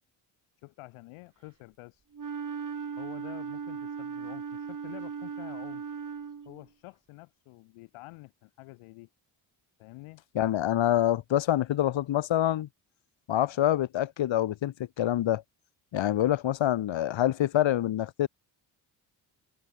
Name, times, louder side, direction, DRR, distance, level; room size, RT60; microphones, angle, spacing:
voice 1, 0.6-2.1 3.0-5.8 6.4-9.1 9.8-10.2, left 22 dB, 85° left, 3.1 m, -48 dB
Wind instrument woodwind instrument, 2.1-6.6, right 6 dB, 40° right, 2.6 m, -37 dB
voice 2, 10.3-12.7 13.3-15.4 15.9-18.3, left 12 dB, 65° left, 1.8 m, -26 dB
supercardioid pair, 55°, 50 cm